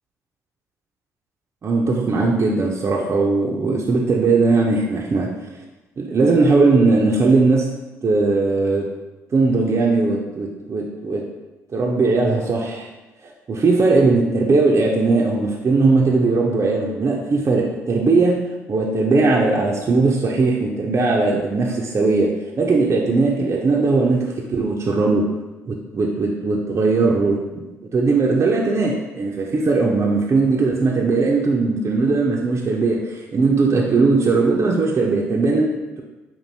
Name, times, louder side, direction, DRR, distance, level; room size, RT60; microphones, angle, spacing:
voice 1, 1.6-5.3 6.0-7.7 8.0-8.9 9.3-11.2 11.7-12.9 13.2-18.4 18.7-22.3 22.6-25.3 25.7-27.4 27.9-36.0, right 3 dB, 40° right, -2 dB, 0.6 m, -19 dB
5.2 x 2.6 x 2.7 m, 1.1 s
hypercardioid pair, 55°, 7 cm